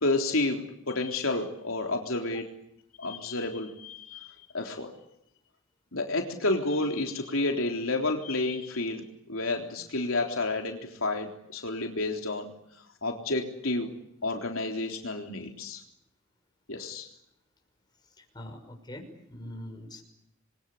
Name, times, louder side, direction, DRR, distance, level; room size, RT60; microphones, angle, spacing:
voice 1, 0.0-2.5 3.0-4.9 5.9-12.5 13.0-13.9 14.2-15.8 16.7-17.1, left 2 dB, 75° left, 3 dB, 3.7 m, -30 dB
voice 2, 18.0-20.0, left 1 dB, 20° left, 4 dB, 5.9 m, -43 dB
28.5 x 23.0 x 8.5 m, 0.78 s
head